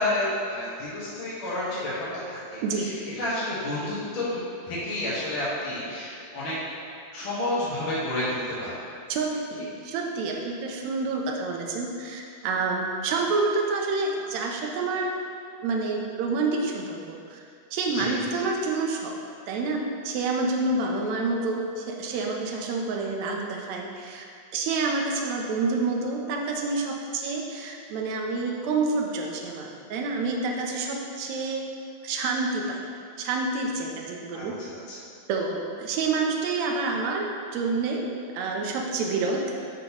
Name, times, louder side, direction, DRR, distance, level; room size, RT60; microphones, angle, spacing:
voice 1, 0.0-1.9 2.3-6.5 7.1-8.7 17.9-18.2 34.3-35.0, left 1 dB, 50° left, -10 dB, 1.9 m, -30 dB
voice 2, 9.1-15.1 15.6-17.4 17.7-19.2 19.5-31.6 32.0-32.8 33.2-34.6 35.3-38.0 38.3-39.4, right 3 dB, 75° right, 0 dB, 1.9 m, -28 dB
11.5 x 3.9 x 3.0 m, 2.4 s
omnidirectional pair, 3.6 m